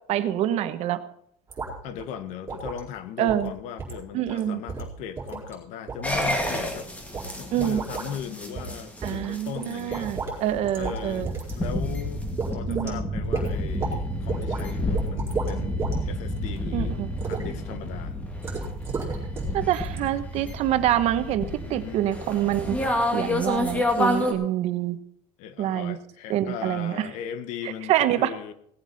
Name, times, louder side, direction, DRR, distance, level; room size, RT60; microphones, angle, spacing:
voice 1, 0.1-1.0 3.2-3.5 4.1-4.6 7.5-7.8 9.0-11.3 12.7-13.0 16.7-17.1 19.5-22.8 23.1-25.0 25.6-26.0 26.3-27.1 27.6-28.3, right 12 dB, 55° right, 11 dB, 1.1 m, -26 dB
sound 1, 1.5-1.7 2.0-2.1 2.5-2.8 3.3-3.5 3.8-4.0 4.3-4.4 4.7-5.5 5.9-6.6 7.1-7.3 7.6-8.1 8.6-8.7 9.0-10.4 10.6-11.0 11.2-11.5 11.9-12.0 12.4-12.9 13.3-14.0 14.3-14.6 14.9-16.0 16.3-16.6 17.2-17.4 18.4-19.6 19.8-20.0, right 4 dB, 20° right, 4.4 m, -32 dB
voice 2, 1.8-10.1 10.7-11.3 11.5-12.2 12.5-17.0 17.2-18.2 21.6-22.1 25.4-28.5, left 8 dB, 65° left, 12 dB, 1.3 m, -38 dB
sound 2, 6.0-24.3, left 1 dB, 10° left, 2.1 m, -30 dB
17.5 x 8.0 x 5.8 m, 0.70 s
cardioid pair, 150°, 13 cm